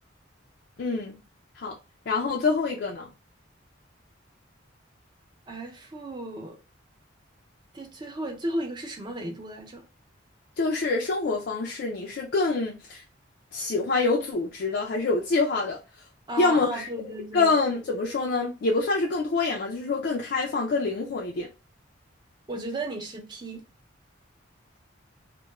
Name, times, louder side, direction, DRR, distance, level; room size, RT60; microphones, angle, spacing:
voice 1, 0.8-1.2 1.5-1.7 2.1-3.1 10.6-13.0 13.5-15.8 16.4-16.9 17.3-21.5, left 3 dB, 55° left, 0.4 m, -26 dB
voice 2, 5.5-6.6 7.7-9.8 16.3-17.5 22.5-23.6, right 1 dB, 25° right, 0.5 m, -34 dB
2.3 x 2.1 x 3.0 m
head